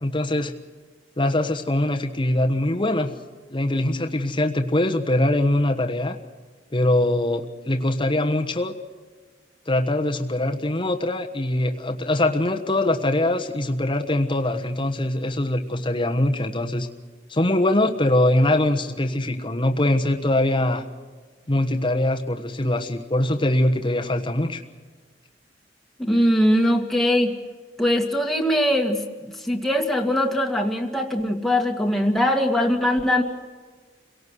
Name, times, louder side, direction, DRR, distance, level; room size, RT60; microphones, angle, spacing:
voice 1, 0.0-0.5 1.2-3.1 3.5-6.2 6.7-8.7 9.7-16.9 17.3-20.8 21.5-24.6, left 1 dB, 30° left, 3 dB, 1.3 m, -22 dB
voice 2, 26.0-27.3 27.8-33.2, equal, ahead, 1 dB, 2.0 m, -21 dB
28.5 x 18.0 x 6.4 m, 1.4 s
head